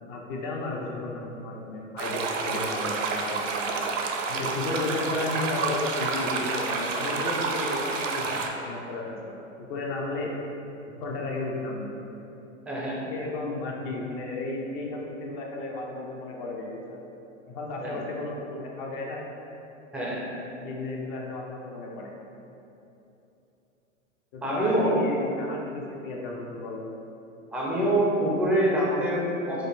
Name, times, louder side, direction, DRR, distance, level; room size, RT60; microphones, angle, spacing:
voice 1, 0.0-3.8 4.3-10.3 10.9-11.9 13.1-17.0 17.5-19.2 20.6-22.1 24.3-26.8, left 2 dB, 45° left, -1 dB, 0.7 m, -33 dB
sound 1, 2.0-8.5, right 4 dB, 70° right, 0.6 m, -29 dB
voice 2, 12.7-13.1 17.8-17.9 19.9-20.2 24.4-25.0 27.5-29.7, right 1 dB, 5° right, -5 dB, 0.4 m, -25 dB
5.1 x 2.1 x 3.3 m, 2.9 s
hypercardioid pair, 110°, 39 cm